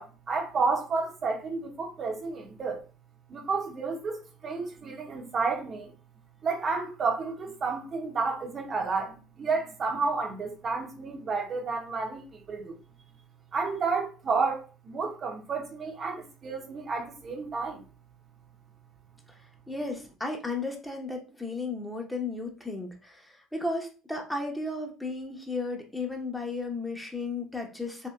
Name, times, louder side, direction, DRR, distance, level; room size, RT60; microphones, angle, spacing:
voice 1, 0.0-2.8 3.3-5.9 6.4-12.8 13.5-17.9, right 4 dB, 40° right, 0.7 m, -31 dB
voice 2, 19.7-23.2 23.5-28.1, left 3 dB, 5° left, 0.8 m, -34 dB
3.1 x 2.8 x 2.3 m
hypercardioid pair, 65°, 0 cm